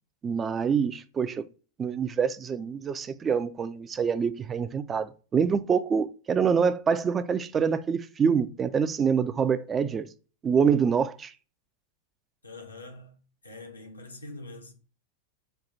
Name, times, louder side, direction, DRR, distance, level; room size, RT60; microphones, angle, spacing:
voice 1, 0.2-1.4 1.8-10.1 10.4-11.3, right 6 dB, 20° right, 0.3 m, -26 dB
voice 2, 12.4-13.1 13.4-14.7, left 2 dB, 80° left, 0.8 m, -44 dB
4.4 x 2.3 x 3.9 m
figure-of-eight pair, 90°, 0 cm